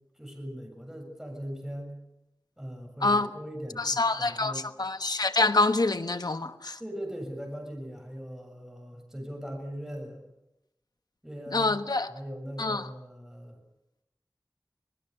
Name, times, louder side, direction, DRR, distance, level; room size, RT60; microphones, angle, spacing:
voice 1, 0.2-1.9 2.6-4.6 6.8-10.2 11.2-11.7 12.1-13.6, equal, 5° right, 7.2 m, -40 dB
voice 2, 3.8-6.8 11.5-12.1 12.6-12.9, left 3 dB, 70° left, 1.3 m, -26 dB
25.5 x 20.0 x 6.9 m
wide cardioid pair, 50°, 7 cm